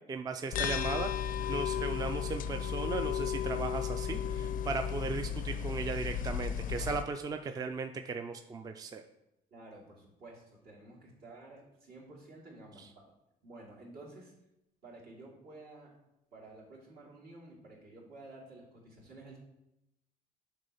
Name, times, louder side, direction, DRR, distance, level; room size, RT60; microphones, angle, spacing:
voice 1, 0.1-1.1 1.5-9.0, right 4 dB, 20° right, 7 dB, 0.4 m, -37 dB
sound 1, 0.5-7.0, left 8 dB, 55° left, 0.4 m, -34 dB
voice 2, 9.5-13.1 13.4-14.3 14.8-15.9 16.3-19.4, right 2 dB, 70° right, -4 dB, 2.7 m, -52 dB
6.6 x 3.8 x 5.6 m, 0.87 s
cardioid pair, 110°, 17 cm